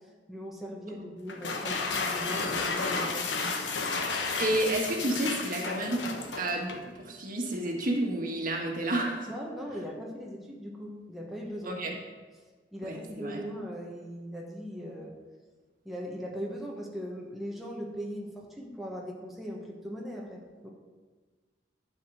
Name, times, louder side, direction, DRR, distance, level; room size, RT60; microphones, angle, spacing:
voice 1, 0.3-3.4 9.3-11.8 12.7-15.1 15.8-20.7, equal, ahead, -3 dB, 1.2 m, -39 dB
sound 1, 1.3-6.9, left 4 dB, 85° left, 1.1 m, -32 dB
voice 2, 4.4-6.0 6.3-9.3 11.6-11.9 12.8-13.4, right 1 dB, 50° right, 1 dB, 1.6 m, -30 dB
11.5 x 4.9 x 6.2 m, 1.4 s
head